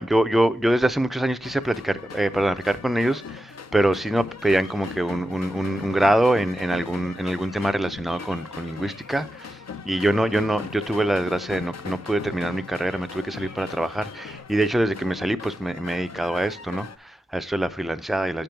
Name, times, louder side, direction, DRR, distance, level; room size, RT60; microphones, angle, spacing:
voice 1, 0.0-18.4, right 1 dB, ahead, 0.4 m, -24 dB
sound 1, 1.4-17.0, left 6 dB, 55° left, 0.5 m, -39 dB
Bird vocalization bird call bird song, 4.3-14.4, left 3 dB, 75° left, 1.2 m, -52 dB
8.5 x 5.3 x 4.5 m
wide cardioid pair, 70°, 33 cm